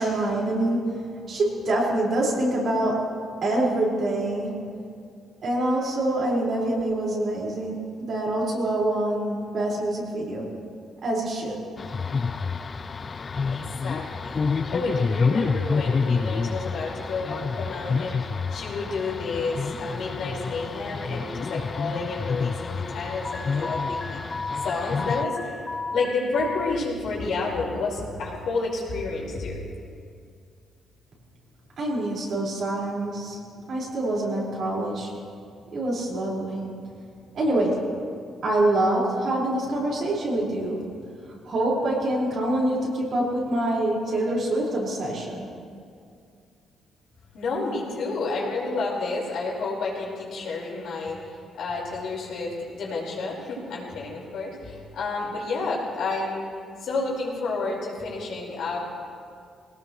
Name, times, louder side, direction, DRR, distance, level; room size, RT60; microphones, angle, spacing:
voice 1, 0.0-3.1 3.4-4.5 5.4-10.5 11.0-11.6 31.8-33.4 33.7-35.1 35.7-36.6 37.3-37.9 38.4-40.9 41.4-45.5, right 1 dB, 60° right, -4 dB, 5.2 m, -25 dB
sound 1, 11.8-25.2, left 5 dB, 35° left, 0.4 m, -28 dB
voice 2, 13.5-24.2 24.6-29.6 47.3-56.4 56.8-58.8, left 3 dB, 70° left, -4 dB, 5.1 m, -30 dB
Alarm, 23.2-26.7, left 3 dB, 15° left, 0.9 m, -33 dB
21.0 x 18.5 x 3.3 m, 2.3 s
cardioid pair, 90°, 0 cm